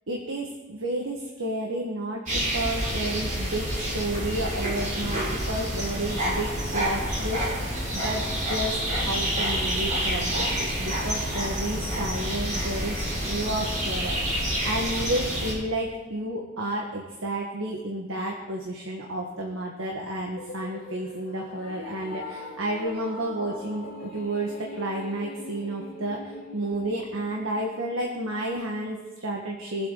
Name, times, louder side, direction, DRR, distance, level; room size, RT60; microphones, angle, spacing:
voice 1, 0.1-13.0 13.2-29.9, right 1 dB, 75° right, 0 dB, 1.6 m, -31 dB
sound 1, 2.3-15.5, equal, 40° right, 4.3 m, -28 dB
sound 2, 20.4-28.6, left 2 dB, 85° left, 3.1 m, -42 dB
23.0 x 7.9 x 4.0 m, 1.2 s
head